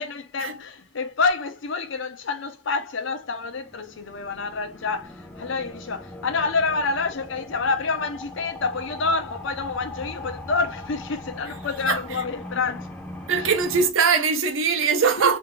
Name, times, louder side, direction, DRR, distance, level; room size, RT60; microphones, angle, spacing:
voice 1, 0.0-12.9 13.4-13.5, left 4 dB, 70° left, 0.6 m, -28 dB
sound 1, 3.2-13.9, left 1 dB, 5° left, 0.5 m, -40 dB
voice 2, 13.3-15.4, right 5 dB, 80° right, 0.6 m, -21 dB
3.2 x 2.5 x 2.5 m
head